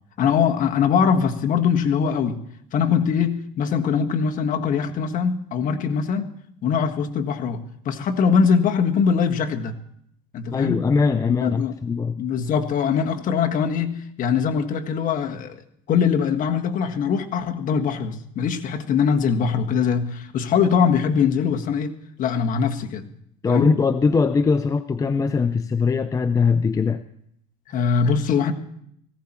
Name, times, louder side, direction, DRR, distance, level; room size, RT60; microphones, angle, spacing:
voice 1, 0.2-2.4 2.7-6.3 6.6-9.7 10.3-10.9 11.3-11.7 12.2-15.6 15.9-21.9 22.2-23.0 23.5-23.7 27.7-28.5, left 6 dB, 45° left, 5 dB, 1.6 m, -22 dB
voice 2, 10.5-12.1 23.4-27.0, left 5 dB, 20° left, 11 dB, 0.5 m, -21 dB
18.5 x 16.0 x 4.4 m, 0.71 s
cardioid pair, 125°, 19 cm